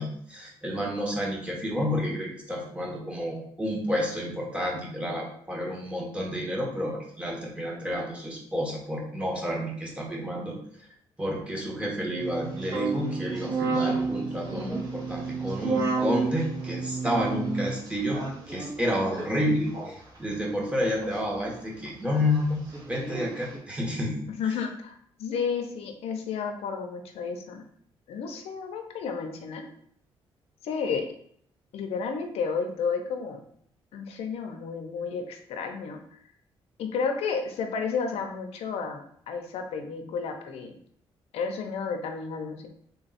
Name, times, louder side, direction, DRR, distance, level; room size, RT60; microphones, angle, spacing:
voice 1, 0.0-10.6 11.2-18.2 18.5-22.6 22.9-24.2, equal, 10° right, -2 dB, 1.1 m, -30 dB
sound 1, 12.2-20.2 21.0-21.4 21.9-22.0 22.2-23.6, right 4 dB, 40° right, 1.5 m, -31 dB
voice 2, 24.3-27.6 28.1-29.7 30.6-31.1 31.7-33.4 33.9-36.2 36.8-40.7 41.3-42.7, left 5 dB, 80° left, 5 dB, 0.6 m, -32 dB
3.5 x 2.3 x 4.1 m, 0.63 s
cardioid pair, 100°, 10 cm